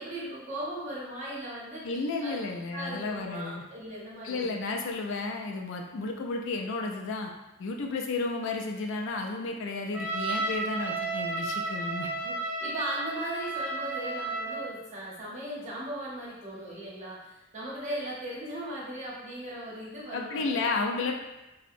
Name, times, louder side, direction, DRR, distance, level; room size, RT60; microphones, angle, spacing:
voice 1, 0.0-2.4 2.7-4.6 12.2-20.7, right 1 dB, 35° right, -6 dB, 0.8 m, -38 dB
voice 2, 1.8-3.6 4.2-7.3 7.6-12.1 20.1-21.2, left 3 dB, 65° left, 2 dB, 0.4 m, -32 dB
Trumpet, 9.9-14.7, right 3 dB, 5° right, 0.3 m, -32 dB
2.6 x 2.0 x 2.5 m, 0.99 s
head